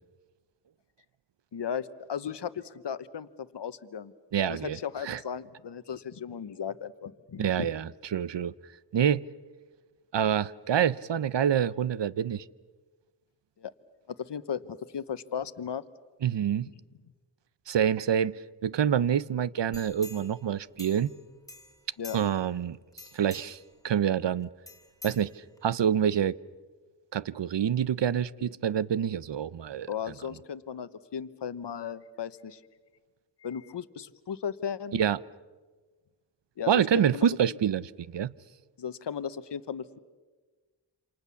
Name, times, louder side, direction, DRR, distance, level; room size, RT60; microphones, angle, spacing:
voice 1, 1.5-4.1 4.5-7.7 13.6-13.7 14.3-15.8 22.0-22.2 29.9-32.6 33.4-35.0 36.6-37.6 38.8-40.0, left 8 dB, 65° left, 1.1 m, -36 dB
voice 2, 4.3-4.8 5.0-5.2 7.4-8.5 8.9-9.2 10.1-12.4 16.2-16.7 17.7-21.1 22.1-22.8 23.1-23.6 23.8-24.5 25.0-25.3 25.6-26.4 27.1-29.9 34.9-35.2 36.7-38.3, right 9 dB, 70° right, 0.8 m, -27 dB
sound 1, 19.7-21.2 21.5-22.5 22.9-23.7 24.7-25.8 26.2-26.3, left 3 dB, 5° left, 2.9 m, -48 dB
28.0 x 26.5 x 7.1 m
wide cardioid pair, 65°, 45 cm